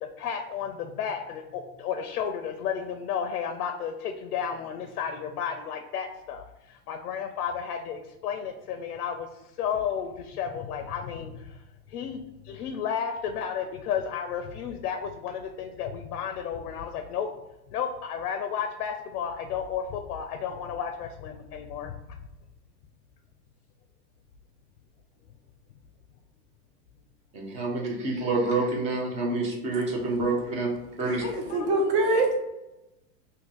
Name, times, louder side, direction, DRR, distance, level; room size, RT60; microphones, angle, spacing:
voice 1, 0.0-17.3 17.7-22.2 31.2-31.9, left 7 dB, 90° left, 6 dB, 0.5 m, -33 dB
voice 2, 27.3-30.7 31.0-31.2, right 3 dB, 15° right, -1 dB, 0.3 m, -27 dB
voice 3, 31.0-32.4, right 2 dB, 45° right, 2 dB, 0.8 m, -25 dB
2.7 x 2.6 x 3.8 m, 0.96 s
supercardioid pair, 130°, 45 cm